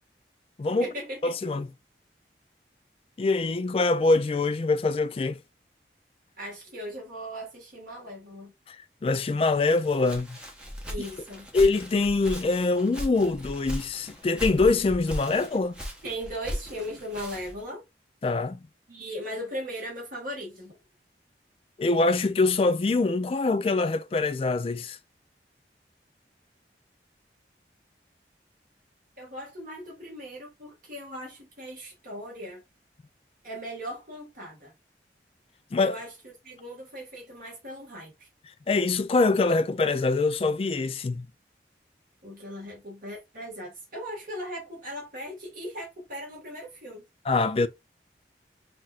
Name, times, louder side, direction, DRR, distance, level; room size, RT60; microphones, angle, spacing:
voice 1, 0.7-1.5 6.4-8.5 10.9-11.5 16.0-17.8 18.9-20.8 29.2-32.6 33.4-34.7 35.8-38.3 42.2-47.1, equal, 50° right, 1.7 m, -38 dB
voice 2, 1.2-1.7 3.2-5.4 8.7-10.4 11.5-15.8 18.2-18.6 21.8-25.0 35.7-36.0 38.7-41.3 47.3-47.7, left 3 dB, 30° left, 0.3 m, -24 dB
Walk footsteps, 9.7-17.6, equal, 5° right, 0.9 m, -38 dB
5.7 x 2.5 x 2.4 m
head